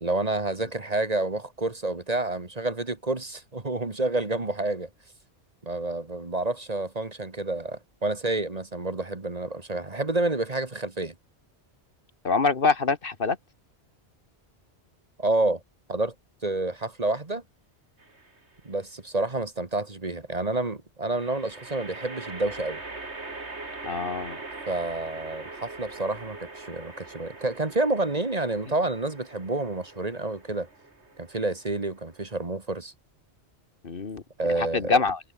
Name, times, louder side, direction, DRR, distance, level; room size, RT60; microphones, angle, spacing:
voice 1, 0.0-4.9 5.6-11.1 15.2-15.6 15.9-16.1 16.4-17.4 18.6-22.8 24.7-30.7 31.2-32.9 34.4-35.0, right 2 dB, 35° right, 1.9 m, -29 dB
voice 2, 12.2-13.4 23.8-24.4 33.8-34.2 34.6-35.2, left 4 dB, 55° left, 1.5 m, -25 dB
sound 1, 18.0-18.6 21.1-32.5, right 3 dB, 90° right, 3.7 m, -42 dB
omnidirectional pair, 1.1 m